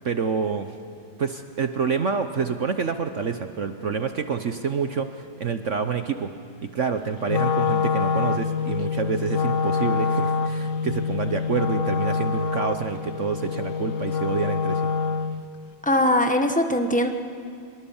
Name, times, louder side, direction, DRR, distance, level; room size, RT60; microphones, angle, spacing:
voice 1, 0.0-0.7 1.2-6.3 6.7-14.8, right 6 dB, 55° right, 8 dB, 0.9 m, -27 dB
Wind instrument woodwind instrument, 7.2-15.5, left 5 dB, 60° left, 0.8 m, -25 dB
voice 2, 15.8-17.1, left 1 dB, 5° left, 5 dB, 0.9 m, -21 dB
24.5 x 23.0 x 7.2 m, 2.3 s
omnidirectional pair, 2.2 m